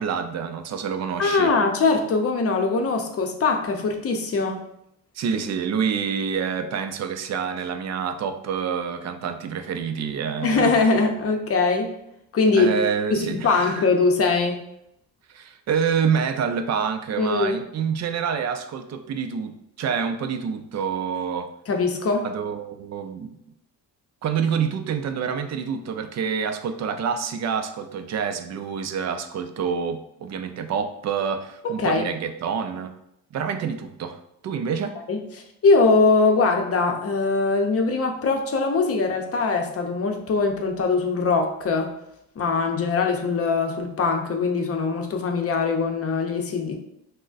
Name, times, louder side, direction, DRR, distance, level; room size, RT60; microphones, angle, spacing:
voice 1, 0.0-1.5 5.2-10.7 12.5-13.8 15.3-21.5 22.2-23.4 24.2-33.0 33.3-35.0, right 7 dB, 45° right, 8 dB, 0.4 m, -27 dB
voice 2, 1.2-4.6 10.4-11.9 12.3-12.7 13.1-14.6 17.2-17.6 21.7-22.3 31.6-32.1 35.1-35.2 35.6-41.9 42.4-46.7, left 4 dB, 40° left, 3 dB, 0.6 m, -22 dB
6.0 x 2.1 x 2.5 m, 0.78 s
cardioid pair, 115°, 37 cm